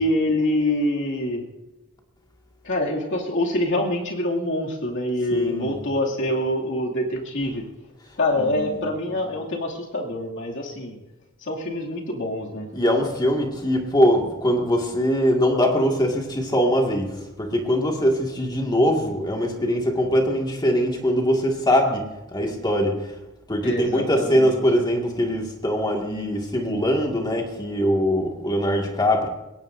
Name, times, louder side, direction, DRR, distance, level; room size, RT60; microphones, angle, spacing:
voice 1, 0.0-1.4 2.6-7.6 8.2-11.0 11.4-12.7 23.6-24.6, left 1 dB, 60° left, -1 dB, 2.5 m, -25 dB
voice 2, 5.3-5.7 8.4-8.8 12.7-23.1 23.5-29.3, equal, 20° left, 1 dB, 2.0 m, -22 dB
21.0 x 18.0 x 2.6 m, 1.0 s
head